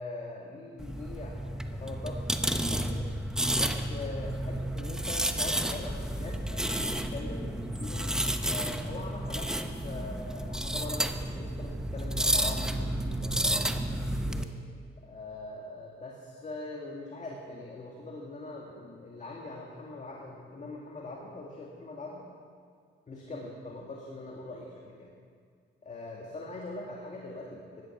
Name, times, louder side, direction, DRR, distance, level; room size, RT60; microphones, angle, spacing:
voice 1, 0.0-3.1 3.5-8.1 8.5-9.5 9.8-14.5 15.0-22.3 23.1-25.1 25.8-27.9, left 2 dB, 35° left, -1 dB, 2.0 m, -42 dB
sound 1, 0.8-14.4, right 1 dB, 5° right, 0.9 m, -31 dB
16.0 x 11.0 x 6.1 m, 2.1 s
cardioid pair, 90°, 20 cm